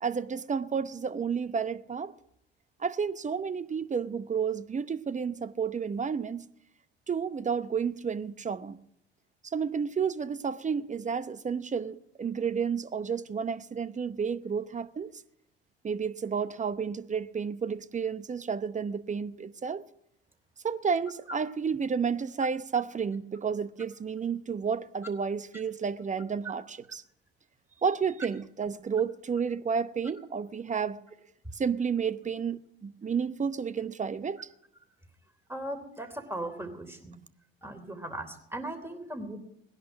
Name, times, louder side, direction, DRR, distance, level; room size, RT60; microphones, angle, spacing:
voice 1, 0.0-2.1 2.8-6.5 7.1-8.8 9.4-15.1 15.8-19.8 20.6-27.0 27.8-31.0 31.5-34.4, right 6 dB, 25° right, 0.9 m, -31 dB
voice 2, 35.5-37.2 37.6-39.4, right 1 dB, 10° right, 3.3 m, -38 dB
19.0 x 11.0 x 6.2 m
hypercardioid pair, 65°, 30 cm